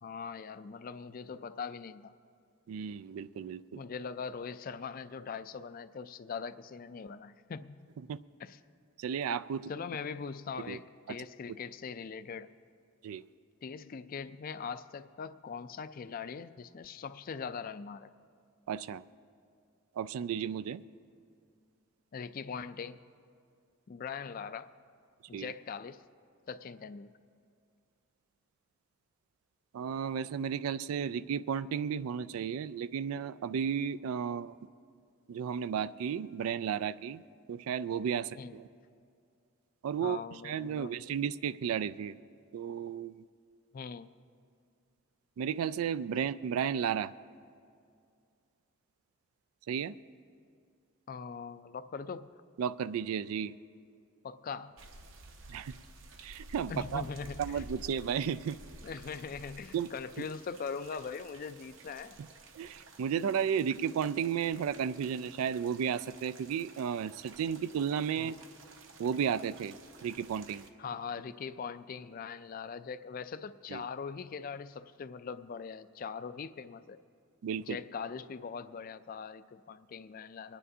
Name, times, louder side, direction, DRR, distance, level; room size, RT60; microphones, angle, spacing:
voice 1, 0.0-2.1 3.7-7.9 8.4-8.6 9.7-12.5 13.6-18.1 22.1-23.0 23.9-24.7 25.3-26.0 26.5-27.1 34.3-34.5 38.4-38.5 40.0-41.0 43.7-44.1 51.1-52.3 54.2-54.7 56.7-57.6 58.8-62.2 68.2-68.4 70.8-77.0 77.6-80.6, left 5 dB, 40° left, 12 dB, 0.3 m, -41 dB
voice 2, 2.7-3.8 8.1-8.2 9.0-9.7 10.7-10.8 11.1-11.2 13.0-13.2 18.7-19.0 20.0-20.8 25.3-25.5 29.7-34.5 35.3-37.2 37.5-38.7 39.8-42.2 42.5-43.2 45.4-47.1 49.7-50.0 52.6-53.5 55.5-55.7 56.2-57.0 57.4-58.6 59.7-59.9 62.2-62.3 62.6-68.4 69.0-69.8 70.0-70.7 73.7-73.8 77.4-77.8, right 7 dB, 85° right, 16 dB, 0.3 m, -33 dB
sound 1, 54.8-70.7, right 2 dB, 65° right, 0.8 m, -52 dB
25.0 x 10.0 x 2.8 m, 2.3 s
head